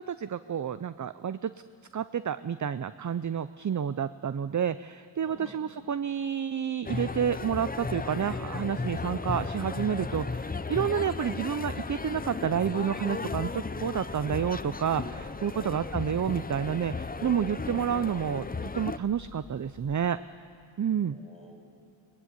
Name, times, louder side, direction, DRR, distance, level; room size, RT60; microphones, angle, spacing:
voice 1, 0.0-1.5 1.9-18.5 18.7-20.2 20.8-21.2, right 8 dB, 40° right, 13 dB, 0.5 m, -30 dB
voice 2, 5.2-5.6 15.2-15.7 17.2-17.3 20.8-21.5, left 1 dB, 10° right, -1 dB, 7.1 m, -52 dB
sound 1, 6.8-19.0, left 4 dB, 20° left, 0.5 m, -35 dB
sound 2, 13.9-20.1, left 3 dB, 65° left, 2.4 m, -51 dB
22.5 x 20.5 x 8.3 m, 2.5 s
wide cardioid pair, 95°, 46 cm